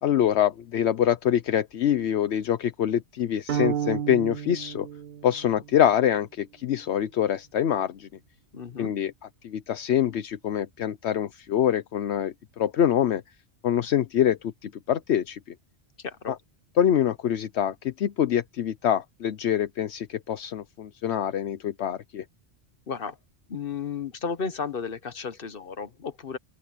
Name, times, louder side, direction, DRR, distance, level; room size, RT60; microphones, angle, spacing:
voice 1, 0.0-4.9 5.2-8.1 8.8-9.1 9.4-13.2 13.6-15.4 16.3-16.4 16.8-22.2, left 10 dB, 80° left, 1.0 m, -25 dB
sound 1, 3.5-5.8, right 9 dB, 65° right, 0.9 m, -31 dB
voice 2, 8.5-8.9 16.0-16.4 22.9-23.2 23.5-26.4, left 5 dB, 55° left, 1.1 m, -33 dB
open air
omnidirectional pair, 1.1 m